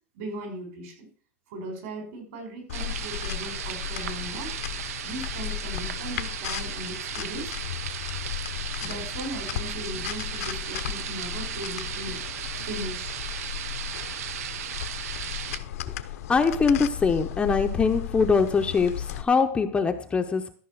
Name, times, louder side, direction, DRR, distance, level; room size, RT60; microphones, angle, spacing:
voice 1, 0.1-1.1 1.5-4.6 5.0-7.5 8.8-12.2 12.6-13.1, right 1 dB, 65° right, 3 dB, 5.9 m, -38 dB
sound 1, 2.7-19.2, left 12 dB, 75° left, 0.9 m, -35 dB
sound 2, 2.7-15.6, right 10 dB, 80° right, 0.8 m, -36 dB
voice 2, 16.3-20.5, left 5 dB, 15° left, 6 dB, 0.7 m, -23 dB
13.5 x 5.4 x 6.3 m, 0.43 s
supercardioid pair, 145°, 8 cm